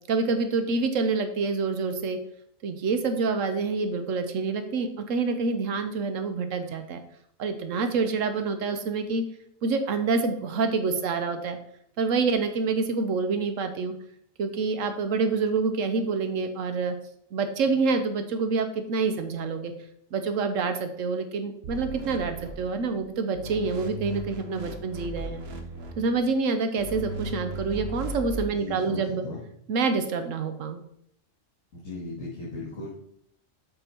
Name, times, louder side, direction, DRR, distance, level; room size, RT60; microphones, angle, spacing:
voice 1, 0.1-2.2 2.6-7.0 7.4-9.2 9.6-11.6 12.0-13.9 14.4-17.0 17.3-19.7 20.1-25.4 26.0-29.2 29.7-30.8, right 4 dB, 75° right, 8 dB, 1.1 m, -27 dB
sound 1, 21.6-23.0 23.3-26.2 26.8-28.5, right 2 dB, 55° right, 1.1 m, -37 dB
voice 2, 28.5-29.4 31.7-32.9, left 2 dB, 75° left, -5 dB, 2.2 m, -37 dB
7.7 x 4.6 x 4.4 m, 0.71 s
omnidirectional pair, 1.4 m